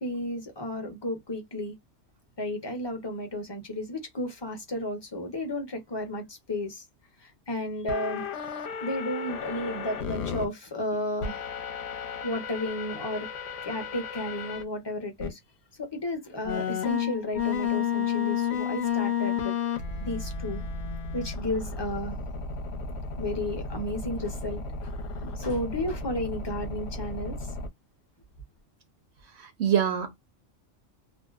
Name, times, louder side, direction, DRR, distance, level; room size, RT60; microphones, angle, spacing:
voice 1, 0.0-1.7 2.4-6.8 7.2-8.3 8.8-11.4 11.9-13.3 13.6-15.4 15.8-19.6 20.0-20.6 21.1-22.2 23.2-24.6 25.2-27.4, left 1 dB, 25° left, 0.6 m, -33 dB
sound 1, 7.9-10.4 11.2-14.6 15.2-15.3 16.4-27.7, left 7 dB, 60° left, 0.9 m, -32 dB
voice 2, 29.4-30.1, right 8 dB, 65° right, 0.8 m, -25 dB
2.6 x 2.0 x 2.3 m
omnidirectional pair, 1.4 m